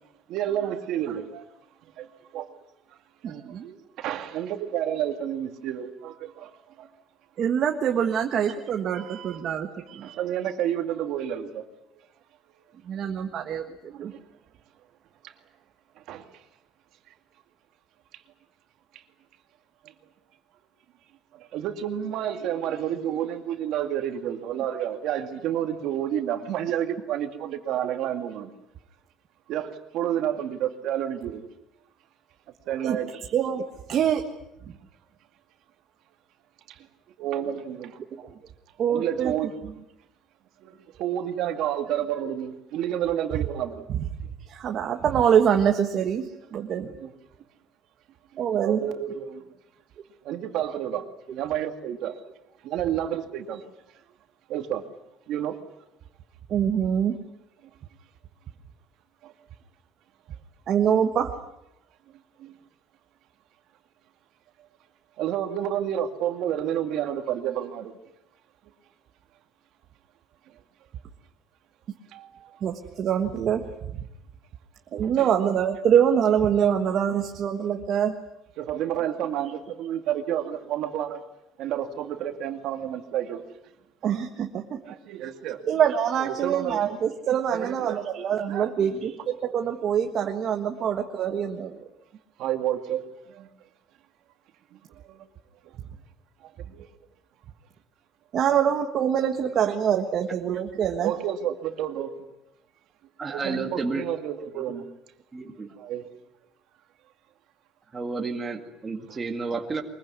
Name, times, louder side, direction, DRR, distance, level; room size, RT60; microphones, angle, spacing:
voice 1, 0.3-1.4 2.0-2.1 2.3-2.5 3.2-3.3 4.0-6.5 6.8-6.9 8.9-9.4 9.9-11.6 13.9-14.2 16.1-16.2 21.5-28.5 29.5-31.4 32.7-33.2 37.2-38.0 38.9-39.5 40.6-43.9 46.9-47.1 48.6-49.4 50.2-51.0 51.3-52.1 52.6-53.6 54.5-54.8 55.3-55.6 59.2-59.3 62.4-62.5 65.2-67.9 72.1-72.5 75.0-75.3 78.6-81.2 81.6-83.4 84.8-85.6 86.1-87.0 87.5-88.0 88.5-89.0 92.4-93.0 93.4-93.5 95.1-95.2 96.6-96.9 101.0-102.1 103.3-104.8 105.8-106.0 109.1-109.2, right 10 dB, 50° right, 6 dB, 2.2 m, -30 dB
voice 2, 3.2-3.8 7.4-10.1 12.8-13.6 14.0-14.1 32.8-33.0 33.3-34.2 34.6-34.7 38.2-38.3 38.8-39.3 39.6-39.7 43.9-44.1 44.5-46.9 48.4-48.8 56.5-57.2 60.7-61.3 72.6-74.0 74.9-78.2 84.0-84.8 85.7-91.9 98.3-101.1, right 8 dB, 35° right, 4 dB, 1.5 m, -25 dB
voice 3, 103.2-104.1 104.5-104.6 105.3-105.7 107.9-109.8, right 4 dB, 15° right, 3 dB, 2.0 m, -31 dB
23.5 x 22.0 x 9.6 m, 0.84 s
cardioid pair, 180°, 0 cm